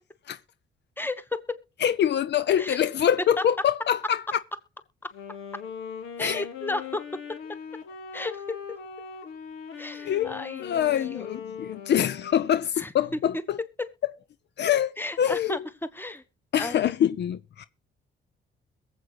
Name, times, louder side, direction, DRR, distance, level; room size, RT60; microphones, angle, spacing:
voice 1, 1.0-1.6 2.6-2.8 5.0-5.1 6.2-7.1 8.1-8.6 9.8-11.3 12.8-12.9 13.8-13.9 15.0-15.6 15.9-16.2 16.6-16.9, left 2 dB, 10° left, 1.3 m, -33 dB
voice 2, 1.8-4.2 6.2-6.4 10.0-10.3 10.6-13.6 14.6-14.9 15.2-15.6 16.5-17.7, left 10 dB, 60° left, 0.7 m, -24 dB
Wind instrument woodwind instrument, 5.0-12.7, left 7 dB, 85° left, 2.0 m, -40 dB
22.0 x 7.9 x 3.2 m
cardioid pair, 90°, 20 cm